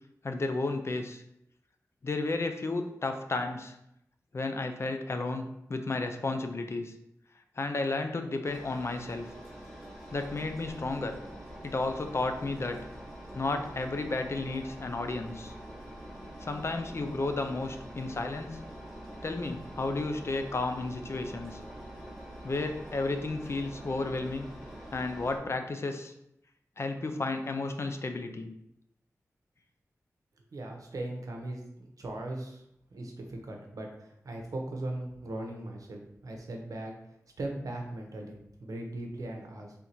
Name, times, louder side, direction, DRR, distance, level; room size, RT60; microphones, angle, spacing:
voice 1, 0.2-1.2 2.0-3.8 4.3-5.4 5.7-6.9 7.6-9.3 10.1-11.1 11.6-12.8 13.3-15.5 16.4-18.5 19.2-21.6 22.4-24.5 24.9-26.1 26.8-28.5, left 3 dB, 50° left, 6 dB, 0.5 m, -32 dB
Engine, 8.4-25.4, right 1 dB, 5° left, 1.3 m, -45 dB
voice 2, 30.5-32.6 32.9-36.9 37.4-39.7, right 1 dB, 75° right, 1 dB, 0.8 m, -39 dB
3.5 x 2.7 x 4.4 m, 0.79 s
wide cardioid pair, 75°, 6 cm